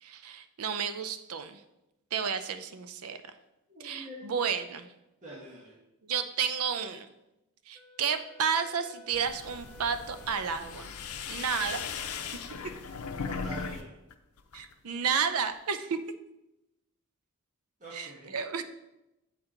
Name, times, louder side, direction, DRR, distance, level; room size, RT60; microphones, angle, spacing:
voice 1, 0.0-1.6 2.1-3.2 3.8-4.9 6.0-7.1 7.7-10.9 11.3-12.1 14.5-16.0 17.9-18.6, right 6 dB, 85° right, 10 dB, 0.6 m, -32 dB
voice 2, 3.7-4.3 5.2-5.7 13.3-13.9 17.8-18.3, equal, 35° right, -7 dB, 1.3 m, -44 dB
Wind instrument woodwind instrument, 7.7-12.1, left 1 dB, 5° left, 0.7 m, -56 dB
sound 1, 9.1-13.8 14.1-14.7, left 6 dB, 90° left, 0.6 m, -38 dB
8.4 x 4.4 x 3.8 m, 0.93 s
head